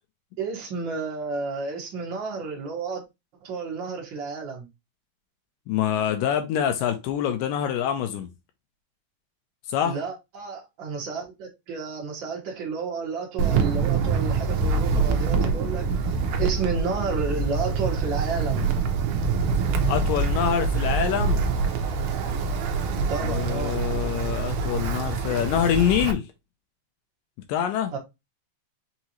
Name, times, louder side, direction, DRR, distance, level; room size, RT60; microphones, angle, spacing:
voice 1, 0.4-3.0 3.4-4.6 9.8-18.7 22.9-23.7 27.9-28.0, right 4 dB, 70° right, 1.1 m, -31 dB
voice 2, 5.7-8.3 9.7-10.0 19.8-21.4 23.2-26.3 27.5-27.9, left 9 dB, 85° left, 2.0 m, -25 dB
Wind, 13.4-26.1, right 5 dB, 90° right, 1.8 m, -25 dB
5.9 x 2.7 x 2.9 m
omnidirectional pair, 4.5 m